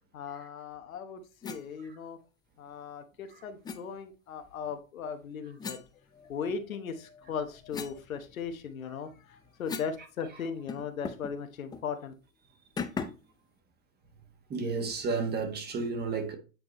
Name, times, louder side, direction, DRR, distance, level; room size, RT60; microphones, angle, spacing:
voice 1, 0.1-2.2 2.6-5.8 6.1-12.1, left 6 dB, 90° left, 1.1 m, -38 dB
sound 1, 1.4-1.7 3.6-3.8 5.6-6.6 7.1-10.0 10.3-10.4 10.7-11.4 11.7-11.9 12.8-13.3, left 5 dB, 10° left, 0.4 m, -40 dB
voice 2, 14.5-16.4, right 4 dB, 25° right, 1.3 m, -31 dB
8.6 x 3.7 x 3.0 m
hypercardioid pair, 110°, 40 cm